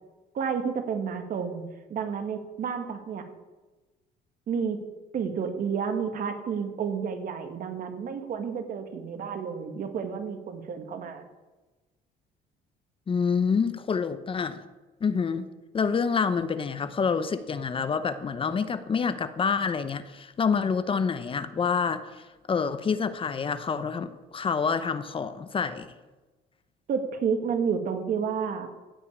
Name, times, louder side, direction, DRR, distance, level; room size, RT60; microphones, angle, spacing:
voice 1, 0.3-1.6 1.9-3.3 4.5-4.8 5.1-11.2 26.9-28.7, right 6 dB, 55° right, 6 dB, 1.9 m, -30 dB
voice 2, 13.1-14.6 15.0-15.5 15.7-25.9, left 5 dB, 30° left, 12 dB, 0.8 m, -27 dB
15.5 x 5.5 x 8.5 m, 1.2 s
cardioid pair, 110°, 17 cm